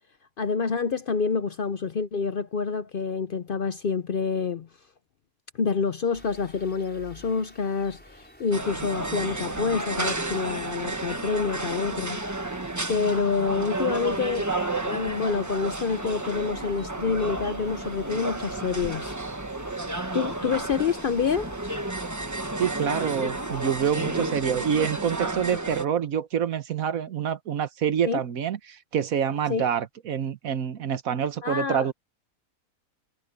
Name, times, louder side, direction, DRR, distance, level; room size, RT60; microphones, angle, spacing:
voice 1, 0.4-4.7 5.6-12.2 12.9-19.2 20.1-21.5 28.1-28.2 29.5-29.7 31.4-31.9, left 5 dB, 50° left, 0.7 m, -27 dB
sound 1, 6.1-24.0, equal, 5° left, 5.1 m, -51 dB
sound 2, 8.5-25.8, right 2 dB, 15° right, 1.1 m, -31 dB
voice 2, 22.6-31.9, right 8 dB, 75° right, 1.5 m, -27 dB
omnidirectional pair, 1.5 m